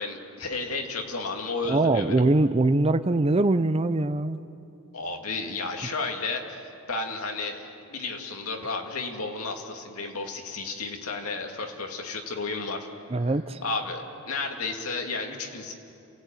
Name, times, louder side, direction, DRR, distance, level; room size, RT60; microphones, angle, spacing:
voice 1, 0.0-2.1 4.9-6.6 6.9-12.9 13.6-15.7, left 3 dB, 75° left, 2 dB, 2.6 m, -32 dB
voice 2, 1.7-4.4 13.1-13.6, right 2 dB, 25° right, 13 dB, 0.5 m, -22 dB
28.0 x 17.0 x 9.2 m, 2.7 s
head